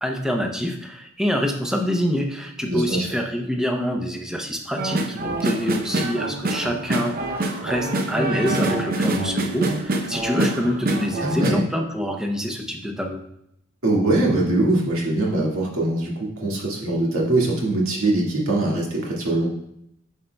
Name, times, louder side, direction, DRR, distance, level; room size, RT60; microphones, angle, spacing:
voice 1, 0.0-13.2, equal, 5° right, 3 dB, 0.6 m, -26 dB
voice 2, 2.6-3.1 11.2-11.6 13.8-19.5, right 2 dB, 70° right, -3 dB, 1.8 m, -22 dB
sound 1, 4.8-11.5, right 2 dB, 45° right, 0.6 m, -25 dB
9.0 x 5.8 x 2.2 m, 0.77 s
head